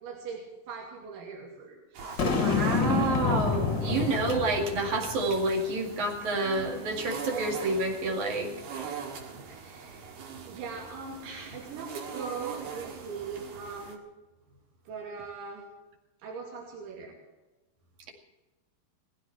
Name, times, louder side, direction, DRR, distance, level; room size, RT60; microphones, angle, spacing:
voice 1, 0.0-2.9 6.4-7.1 9.4-10.2 10.5-14.0 14.9-15.6 16.2-17.1, right 5 dB, 90° right, -2 dB, 4.8 m, -41 dB
sound 1, 1.9-14.0, right 6 dB, 65° right, 3.7 m, -43 dB
Boom, 2.2-5.5, left 5 dB, 50° left, 1.4 m, -28 dB
voice 2, 2.4-8.5, right 2 dB, 50° right, 1 dB, 3.3 m, -29 dB
20.5 x 15.5 x 4.5 m, 1.1 s
omnidirectional pair, 5.1 m